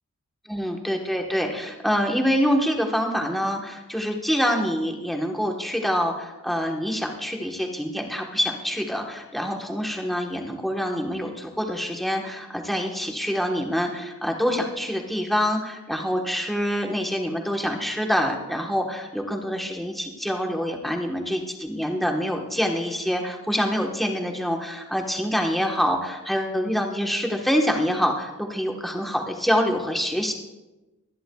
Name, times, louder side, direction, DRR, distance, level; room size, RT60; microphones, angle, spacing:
voice 1, 0.5-30.3, equal, ahead, 1 dB, 1.2 m, -26 dB
25.0 x 11.0 x 2.3 m, 1.1 s
head